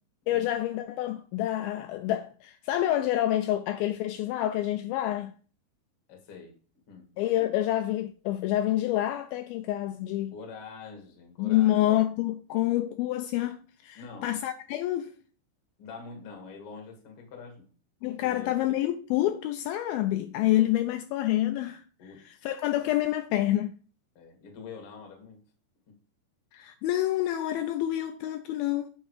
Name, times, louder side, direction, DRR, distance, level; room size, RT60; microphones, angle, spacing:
voice 1, 0.3-5.3 7.2-10.3 11.4-15.1 18.0-21.8 22.2-23.8 26.5-28.9, left 14 dB, 90° left, 2.1 m, -28 dB
voice 2, 6.1-6.5 6.9-7.1 10.3-11.9 14.0-14.3 15.8-17.7 18.2-18.6 22.0-22.4 24.2-25.4 25.9-26.0, left 5 dB, 55° left, 1.7 m, -45 dB
8.7 x 6.4 x 3.1 m
omnidirectional pair, 4.8 m